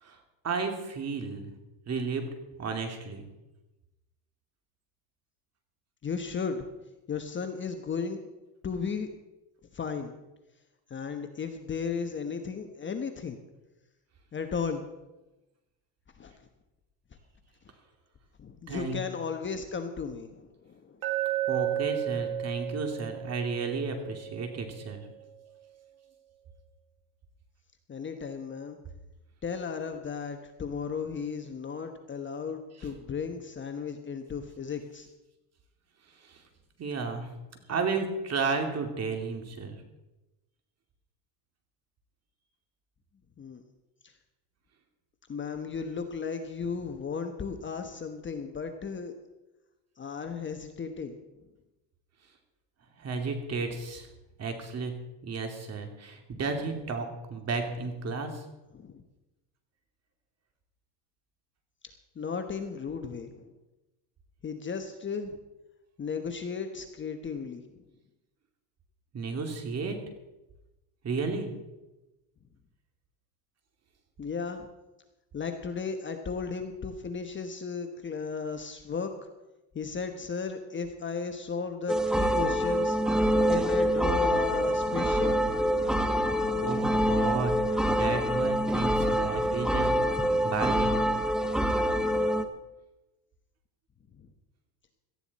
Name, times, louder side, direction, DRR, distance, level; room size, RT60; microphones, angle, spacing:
voice 1, 0.4-1.5 1.9-2.3 2.6-3.3 18.7-19.0 21.5-25.0 36.2-36.4 36.8-37.3 37.7-39.8 53.0-54.1 54.4-54.9 55.2-58.4 69.1-70.0 71.0-71.5 86.6-87.5 87.9-89.9 90.4-91.0, right 4 dB, 35° right, 4 dB, 2.7 m, -32 dB
voice 2, 6.0-6.7 7.1-8.2 8.6-9.1 9.7-10.1 10.9-13.4 14.3-14.8 16.2-16.3 18.4-21.0 27.9-28.8 29.4-35.1 43.4-43.6 44.0-44.1 45.3-49.1 50.0-51.1 58.7-59.0 62.1-63.5 64.4-65.4 66.0-67.6 74.2-74.7 75.3-79.1 79.7-83.0 83.5-85.5 94.2-94.3, left 5 dB, 25° left, 6 dB, 1.2 m, -35 dB
Glass, 21.0-25.1, right 13 dB, 80° right, 2.7 m, -33 dB
sound 1, 81.9-92.4, equal, ahead, 0.9 m, -26 dB
18.0 x 13.5 x 4.2 m, 1.0 s
cardioid pair, 130°, 46 cm